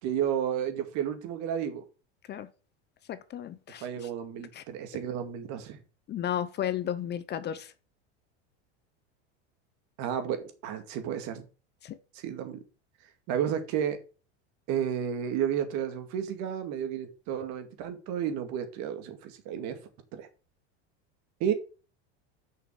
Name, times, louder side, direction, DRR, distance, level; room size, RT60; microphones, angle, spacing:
voice 1, 0.0-1.8 3.8-5.8 10.0-11.4 12.1-12.6 13.3-14.0 14.7-19.8 20.1-20.3 21.4-21.5, right 9 dB, 55° right, 2.1 m, -32 dB
voice 2, 3.1-4.1 4.4-4.6 6.1-7.7 11.8-12.0, left 10 dB, 30° left, 0.7 m, -34 dB
6.7 x 6.0 x 6.4 m
supercardioid pair, 120°, 34 cm